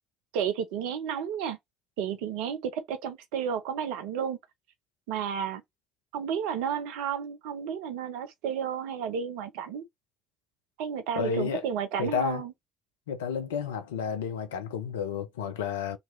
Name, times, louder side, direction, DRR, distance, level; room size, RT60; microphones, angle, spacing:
voice 1, 0.3-1.6 2.0-4.4 5.1-5.6 6.1-9.8 10.8-12.5, right 8 dB, 75° right, 0.8 m, -32 dB
voice 2, 11.2-11.6 12.0-12.4 13.1-16.0, left 7 dB, 85° left, 0.7 m, -31 dB
4.0 x 3.0 x 4.0 m
hypercardioid pair, 50°, 0 cm